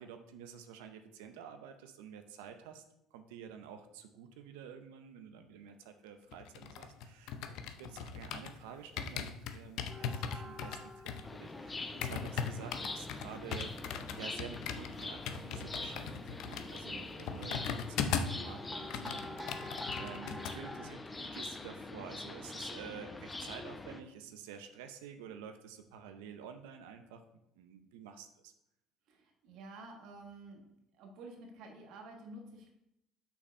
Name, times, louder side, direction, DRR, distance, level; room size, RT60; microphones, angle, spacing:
voice 1, 0.0-2.8 3.1-11.0 11.3-13.8 14.1-27.2 27.6-28.5, right 7 dB, 90° right, 7 dB, 0.6 m, -50 dB
sound 1, 6.3-8.6 9.0-18.4 18.7-20.6 20.8-21.1, left 7 dB, 70° left, 0.6 m, -39 dB
sound 2, 9.9-12.2 12.6-13.1 15.3-15.4 16.5-17.1 17.7-20.9, left 1 dB, ahead, 1.0 m, -48 dB
sound 3, 11.2-24.0, left 2 dB, 20° left, 0.6 m, -44 dB
voice 2, 29.1-30.7 31.0-32.7, right 2 dB, 70° right, 2 dB, 1.3 m, -50 dB
5.9 x 4.1 x 5.3 m, 0.81 s
supercardioid pair, 85°, 0 cm